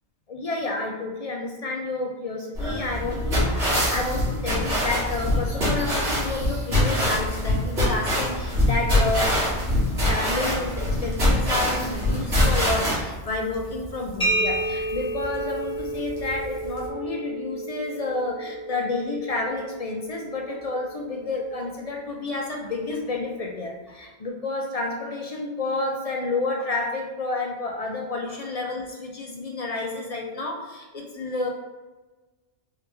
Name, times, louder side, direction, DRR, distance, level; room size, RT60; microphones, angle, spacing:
voice 1, 0.3-31.5, left 2 dB, 50° left, 0 dB, 0.4 m, -30 dB
sound 1, 2.6-13.0, left 1 dB, 65° right, 1.9 m, -24 dB
Rain, 4.6-16.9, equal, 85° right, 1.4 m, -41 dB
sound 2, 14.2-21.8, right 2 dB, 5° left, 0.9 m, -31 dB
3.7 x 3.0 x 3.3 m, 1.2 s
omnidirectional pair, 1.2 m